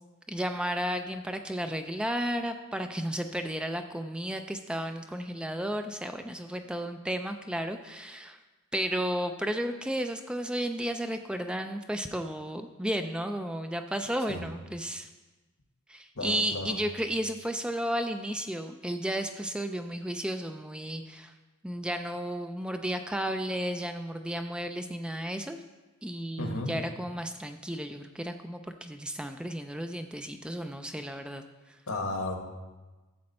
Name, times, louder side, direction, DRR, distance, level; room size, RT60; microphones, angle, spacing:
voice 1, 0.3-8.4 8.7-15.1 15.9-21.3 21.6-25.6 26.0-31.8, equal, 5° right, 6 dB, 0.3 m, -33 dB
voice 2, 16.1-16.8 26.4-26.7 31.9-32.4, left 2 dB, 80° left, 3 dB, 1.6 m, -33 dB
12.0 x 7.6 x 4.2 m, 1.2 s
head